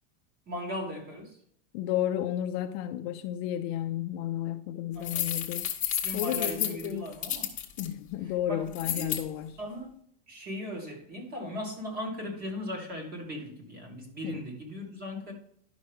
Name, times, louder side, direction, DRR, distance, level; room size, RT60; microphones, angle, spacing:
voice 1, 0.5-1.4 4.9-5.3 6.0-7.5 8.5-9.2 9.6-9.9 10.3-15.3, left 1 dB, 25° right, 2.1 m, -38 dB
voice 2, 1.7-5.7 6.1-7.2 7.8-9.6 14.2-14.4, left 11 dB, 45° left, 0.5 m, -32 dB
sound 1, 5.0-7.9 8.7-9.2, left 10 dB, 20° left, 1.1 m, -31 dB
11.0 x 5.9 x 3.5 m
supercardioid pair, 160°, 36 cm